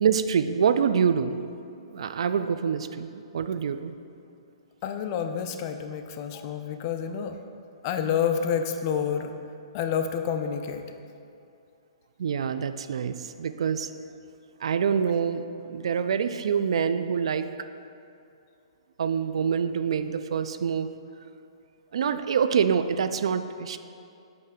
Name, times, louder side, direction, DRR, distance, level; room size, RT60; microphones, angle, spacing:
voice 1, 0.0-1.4 1.9-3.9 12.2-13.9 14.6-17.5 19.0-20.9 21.9-23.8, right 7 dB, 70° right, 11 dB, 0.4 m, -26 dB
voice 2, 4.8-7.3 7.8-9.4 9.7-10.8, left 7 dB, 35° left, 7 dB, 0.5 m, -28 dB
8.3 x 3.2 x 5.8 m, 2.5 s
hypercardioid pair, 145°, 3 cm